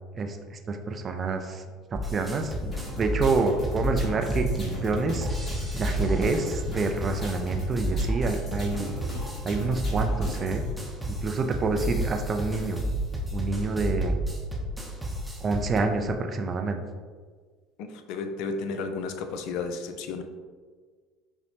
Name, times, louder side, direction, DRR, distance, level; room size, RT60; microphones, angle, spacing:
voice 1, 0.2-1.6 1.9-5.3 5.7-8.9 9.4-10.6 11.1-12.8 13.3-14.2 15.4-16.8, right 3 dB, 35° right, 5 dB, 0.4 m, -28 dB
sound 1, 1.9-15.8, right 1 dB, 10° right, 0.7 m, -31 dB
sound 2, 2.7-10.7, left 1 dB, 40° left, 1.5 m, -38 dB
voice 2, 17.8-20.2, left 4 dB, 65° left, 7 dB, 0.4 m, -33 dB
5.5 x 2.1 x 2.8 m, 1.5 s
hypercardioid pair, 70°, 0 cm